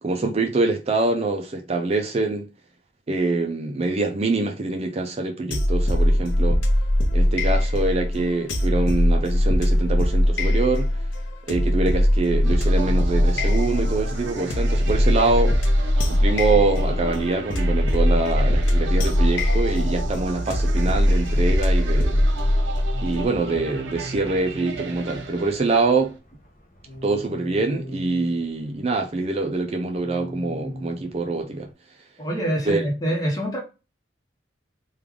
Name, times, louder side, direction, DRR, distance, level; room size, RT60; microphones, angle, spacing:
voice 1, 0.0-2.5 3.1-6.6 7.1-11.0 11.5-15.6 16.1-22.2 23.0-26.1 27.0-31.7 32.7-32.9, right 3 dB, 35° right, 0.4 m, -24 dB
sound 1, 5.5-23.3, left 1 dB, 85° left, 0.8 m, -21 dB
sound 2, 12.4-26.1, right 3 dB, 85° right, 0.9 m, -34 dB
sound 3, 21.2-31.7, equal, 45° left, 0.7 m, -44 dB
voice 2, 32.2-33.6, right 1 dB, 20° left, 1.0 m, -25 dB
3.2 x 2.4 x 3.5 m
head